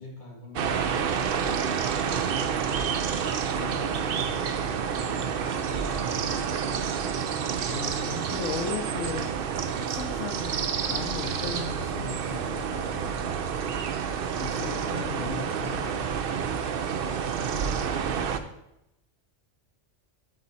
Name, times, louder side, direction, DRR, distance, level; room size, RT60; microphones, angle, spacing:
voice 1, 0.0-1.7 3.4-7.2 14.5-16.0 17.0-17.8, left 2 dB, 40° left, -3 dB, 2.2 m, -45 dB
sound 1, 0.6-18.4, right 7 dB, 60° right, 0.7 m, -29 dB
voice 2, 7.7-9.3 9.9-13.2 14.3-15.9 16.4-16.5 18.0-18.5, left 6 dB, 80° left, 4 dB, 1.0 m, -37 dB
12.5 x 4.1 x 4.1 m, 0.85 s
omnidirectional pair, 1.2 m